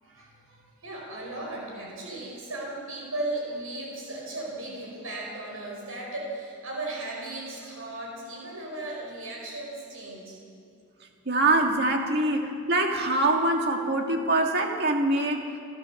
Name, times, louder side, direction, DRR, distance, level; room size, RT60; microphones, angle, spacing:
voice 1, 0.0-10.4, right 2 dB, 70° right, -1 dB, 5.2 m, -36 dB
voice 2, 11.3-15.5, right 2 dB, 45° right, 2 dB, 2.0 m, -24 dB
28.0 x 14.0 x 7.1 m, 2.4 s
head